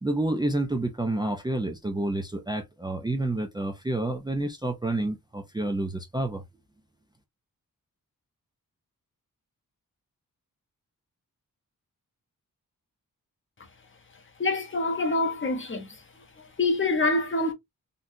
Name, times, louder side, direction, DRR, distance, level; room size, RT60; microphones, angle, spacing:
voice 1, 0.0-6.4, right 2 dB, 15° right, 0.5 m, -29 dB
voice 2, 14.4-15.9 16.6-17.5, left 2 dB, 35° left, 0.8 m, -25 dB
3.9 x 2.3 x 2.6 m
wide cardioid pair, 145°, 34 cm